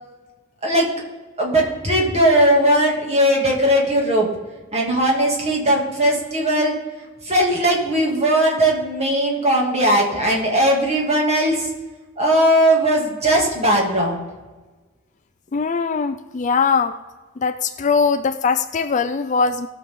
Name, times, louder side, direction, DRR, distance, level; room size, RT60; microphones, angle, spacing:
voice 1, 1.4-4.3 4.7-6.7 7.2-11.7 12.2-14.2, right 1 dB, 30° right, -1 dB, 2.5 m, -18 dB
voice 2, 15.5-16.9 17.4-19.7, left 5 dB, 35° left, 10 dB, 0.4 m, -20 dB
18.0 x 6.7 x 3.7 m, 1.3 s
head